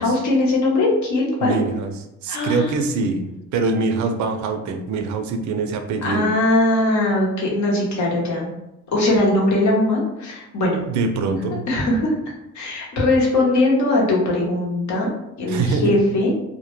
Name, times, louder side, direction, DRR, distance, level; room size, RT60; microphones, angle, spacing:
voice 1, 0.0-1.6 2.3-2.7 6.0-8.5 8.9-10.8 11.7-12.1 12.5-15.1 15.4-16.3, left 2 dB, 70° left, -3 dB, 0.9 m, -20 dB
voice 2, 1.4-6.3 10.9-11.6 15.5-16.0, right 3 dB, 70° right, 6 dB, 0.4 m, -24 dB
2.1 x 2.1 x 3.1 m, 0.89 s
cardioid pair, 90°, 30 cm